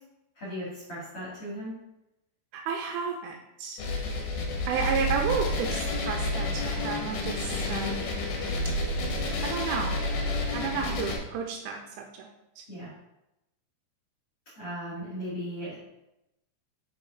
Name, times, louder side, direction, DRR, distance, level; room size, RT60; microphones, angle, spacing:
voice 1, 0.3-1.8 12.7-12.9 14.6-15.8, equal, 40° left, -8 dB, 2.3 m, -37 dB
voice 2, 2.5-3.8 4.7-8.1 9.4-10.0 10.5-12.3 12.6-12.7, right 6 dB, 85° right, 2 dB, 2.9 m, -32 dB
sound 1, 3.8-11.2, left 2 dB, 70° left, 2.4 m, -30 dB
6.7 x 5.4 x 4.8 m, 0.89 s
omnidirectional pair, 6.0 m